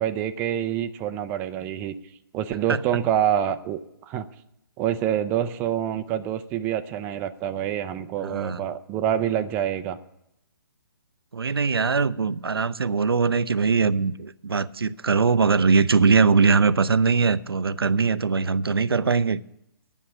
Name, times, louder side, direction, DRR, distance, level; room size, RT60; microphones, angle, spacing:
voice 1, 0.0-1.9 2.3-3.8 4.1-4.3 4.8-10.0, right 10 dB, 15° right, 9 dB, 0.4 m, -26 dB
voice 2, 8.2-8.6 11.3-19.4, right 5 dB, 80° right, 14 dB, 0.5 m, -21 dB
10.0 x 7.1 x 8.5 m, 0.82 s
figure-of-eight pair, 135°, 12 cm